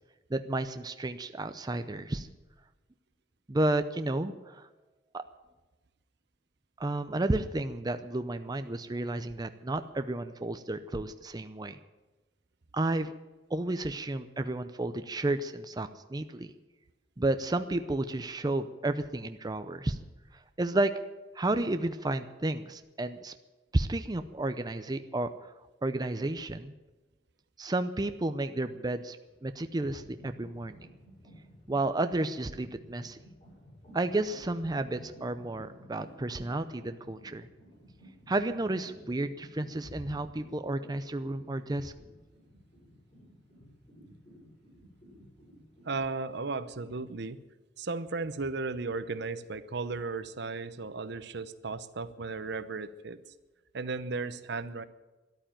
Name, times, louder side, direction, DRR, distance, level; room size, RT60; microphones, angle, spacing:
voice 1, 0.3-2.3 3.5-4.7 5.1-5.2 6.8-11.8 12.7-13.1 13.5-16.5 17.2-20.0 20.6-20.9 21.3-23.3 23.7-25.3 25.8-26.7 27.6-29.2 29.4-30.9 31.7-33.2 33.9-37.5 38.3-41.9, right 2 dB, 20° right, 9 dB, 0.6 m, -32 dB
sound 1, 29.0-29.3 29.6-46.0, equal, 35° left, 6.7 m, -53 dB
voice 2, 45.8-47.4 47.8-53.2 53.7-54.8, right 3 dB, 65° right, 13 dB, 0.8 m, -35 dB
13.5 x 11.5 x 9.0 m, 1.1 s
head